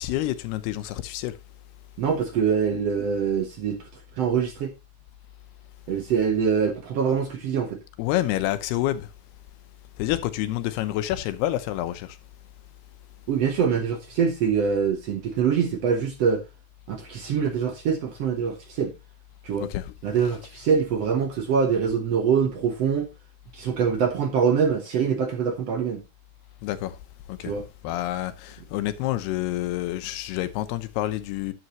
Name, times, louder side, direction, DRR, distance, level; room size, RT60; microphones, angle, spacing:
voice 1, 0.0-1.3 8.0-9.1 10.0-12.2 19.6-20.4 26.6-27.0 27.3-27.6 27.8-31.5, left 14 dB, 85° left, 2.9 m, -28 dB
voice 2, 2.0-3.8 4.2-4.7 5.9-7.8 13.3-16.4 16.9-18.9 19.4-19.7 20.0-23.1 23.5-26.0 27.4-27.6, right 6 dB, 80° right, 1.4 m, -24 dB
11.0 x 8.5 x 3.0 m
omnidirectional pair, 4.6 m